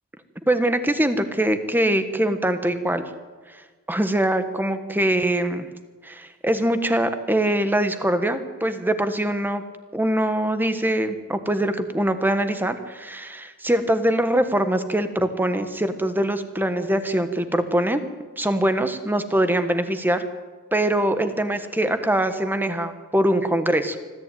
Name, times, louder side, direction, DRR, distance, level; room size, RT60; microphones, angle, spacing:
voice 1, 0.5-3.1 3.9-5.6 6.0-9.6 9.9-18.0 18.4-20.2 20.7-24.0, right 1 dB, 10° right, 9 dB, 1.4 m, -23 dB
25.0 x 14.0 x 9.3 m, 1.4 s
head